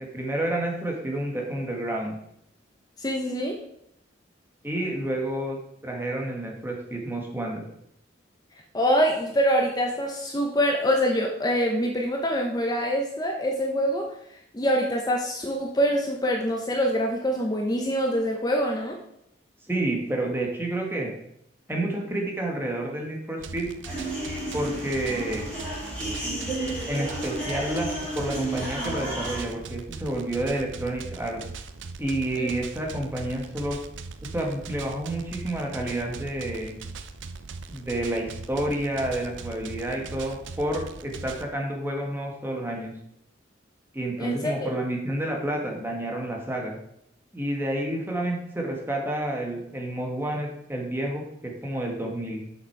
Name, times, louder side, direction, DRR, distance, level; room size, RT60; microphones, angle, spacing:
voice 1, 0.0-2.2 4.6-5.6 5.8-7.6 19.7-21.1 21.7-23.7 24.5-25.5 26.9-27.9 28.1-31.4 32.0-33.8 34.2-36.8 37.7-42.9 43.9-46.8 47.3-52.4, right 1 dB, 10° right, 0 dB, 1.5 m, -29 dB
voice 2, 3.0-3.6 8.7-14.1 14.5-19.0 32.4-32.5 44.2-44.7, equal, 20° left, 0 dB, 0.8 m, -25 dB
sound 1, 23.4-41.4, right 4 dB, 85° right, 0.6 m, -40 dB
sound 2, 23.8-29.4, right 1 dB, 5° left, 3.3 m, -32 dB
6.8 x 6.0 x 4.6 m, 0.75 s
head